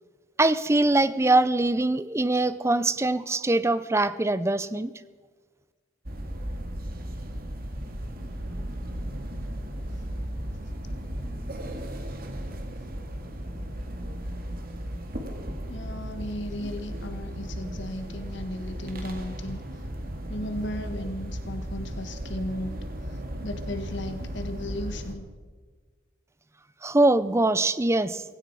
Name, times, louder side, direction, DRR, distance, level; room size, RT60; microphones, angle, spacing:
voice 1, 0.4-4.9 26.8-28.2, right 2 dB, 15° right, 15 dB, 0.5 m, -23 dB
sound 1, 6.0-25.1, equal, 45° right, 2.0 m, -35 dB
voice 2, 15.7-19.6 20.3-22.8 23.1-25.3, left 1 dB, 60° left, 7 dB, 1.4 m, -35 dB
17.5 x 16.0 x 4.8 m, 1.5 s
head